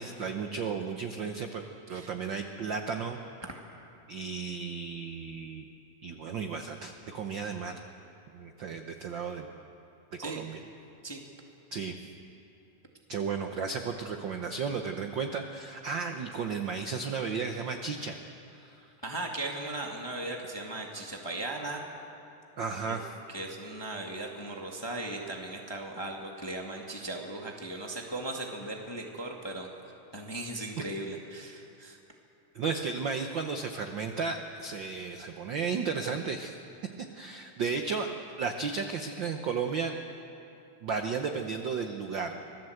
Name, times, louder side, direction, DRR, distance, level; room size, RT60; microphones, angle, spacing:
voice 1, 0.0-1.6 1.9-3.2 4.1-5.7 6.0-7.8 8.3-9.5 10.2-10.6 11.7-11.9 13.1-18.2 18.6-18.9 22.6-23.1 30.8-30.9 32.5-36.6 37.1-38.1 38.4-39.9 40.8-42.4, right 5 dB, 65° right, 5 dB, 1.2 m, -34 dB
voice 2, 19.0-21.8 22.9-23.0 23.3-29.7 30.1-32.0, right 2 dB, 15° left, 0 dB, 1.2 m, -37 dB
25.5 x 16.5 x 7.9 m, 2.8 s
omnidirectional pair, 3.3 m